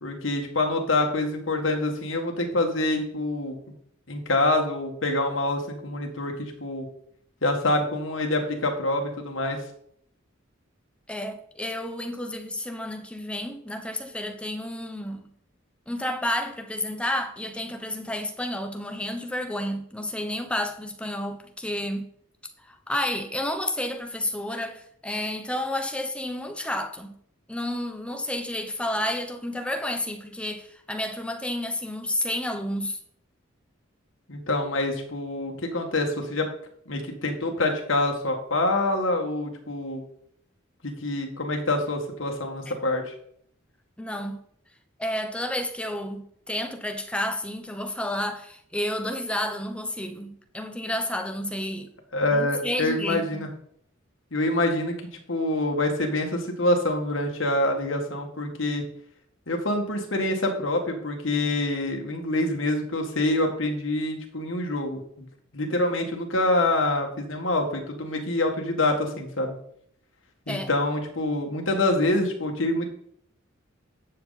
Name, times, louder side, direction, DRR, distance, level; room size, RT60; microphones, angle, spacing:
voice 1, 0.0-3.6 4.1-6.9 7.4-9.6 34.3-36.5 36.9-40.0 40.8-43.1 52.1-53.5 54.3-58.8 59.5-65.3 65.5-69.6 70.5-72.9, left 2 dB, 70° left, 1.9 m, -26 dB
voice 2, 11.1-15.2 15.9-22.1 22.6-27.2 27.5-33.0 42.7-42.8 44.0-44.4 45.0-51.9 52.3-53.5 70.5-70.7, left 1 dB, 5° left, 0.9 m, -31 dB
11.5 x 7.0 x 4.1 m
head